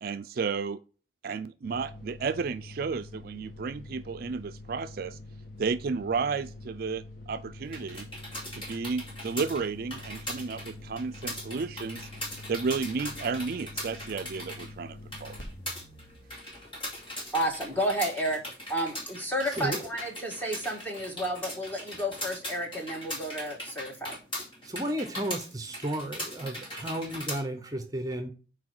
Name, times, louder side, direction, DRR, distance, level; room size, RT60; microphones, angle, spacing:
voice 1, 0.0-0.8 1.2-5.2 5.6-8.1 8.5-12.1 12.5-15.4, right 5 dB, 55° right, 0.4 m, -32 dB
sound 1, 1.6-18.0, left 2 dB, 50° left, 1.5 m, -46 dB
sound 2, 7.6-27.4, equal, 30° left, 2.4 m, -40 dB
voice 2, 17.3-18.4 18.7-24.2, right 1 dB, 10° left, 1.6 m, -31 dB
voice 3, 24.6-28.3, right 1 dB, 20° right, 0.8 m, -33 dB
6.1 x 4.5 x 4.6 m
head